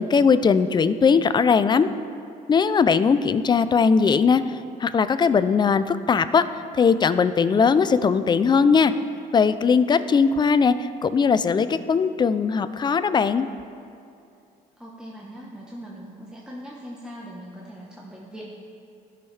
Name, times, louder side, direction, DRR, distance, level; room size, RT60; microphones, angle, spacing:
voice 1, 0.0-1.9 2.5-4.4 4.8-6.5 6.7-8.9 9.3-13.5, left 5 dB, 25° left, 12 dB, 0.4 m, -19 dB
voice 2, 14.8-18.5, equal, 5° right, -4 dB, 1.0 m, -40 dB
15.5 x 6.3 x 3.3 m, 2.6 s
cardioid pair, 110°, 17 cm